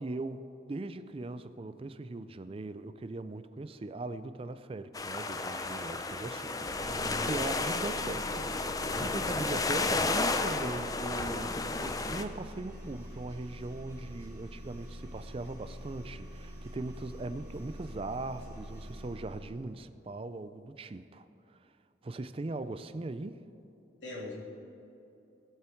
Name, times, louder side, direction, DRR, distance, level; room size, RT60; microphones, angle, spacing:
voice 1, 0.0-21.6 22.0-23.4, right 2 dB, 30° right, 12 dB, 0.4 m, -40 dB
sound 1, 4.9-12.2, left 3 dB, 20° left, 0.5 m, -32 dB
sound 2, 6.6-19.6, equal, 15° right, 3.3 m, -46 dB
voice 2, 6.8-7.3 24.0-24.3, left 1 dB, 85° left, -4 dB, 3.1 m, -41 dB
20.0 x 7.8 x 4.5 m, 2.8 s
head